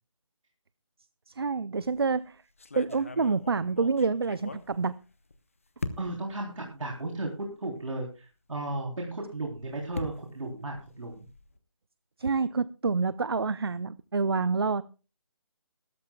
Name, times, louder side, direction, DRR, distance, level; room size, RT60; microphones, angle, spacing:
voice 1, 1.3-2.4 2.8-4.9 12.2-14.8, right 4 dB, 50° right, 17 dB, 0.5 m, -27 dB
sound 1, 1.7-2.1 2.6-5.3 5.8-6.4 7.1-7.2 7.5-7.6 9.3-11.6, left 3 dB, 25° left, 0.8 m, -41 dB
voice 2, 6.0-7.3 7.6-11.3, right 2 dB, 85° right, 0 dB, 3.6 m, -35 dB
20.5 x 13.5 x 2.3 m, 0.33 s
hypercardioid pair, 180°, 16 cm